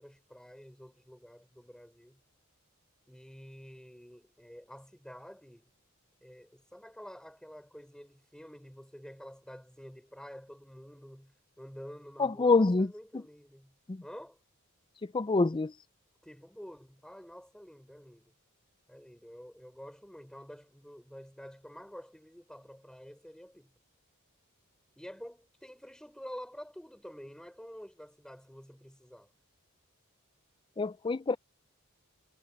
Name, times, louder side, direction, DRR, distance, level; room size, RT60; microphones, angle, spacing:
voice 1, 0.0-2.2 3.1-5.7 6.2-14.4 16.2-18.3 18.9-23.7 25.0-29.3, equal, 5° left, 4.4 m, -49 dB
voice 2, 12.2-12.9 13.9-14.0 15.0-15.7 30.8-31.4, left 3 dB, 20° left, 0.4 m, -26 dB
head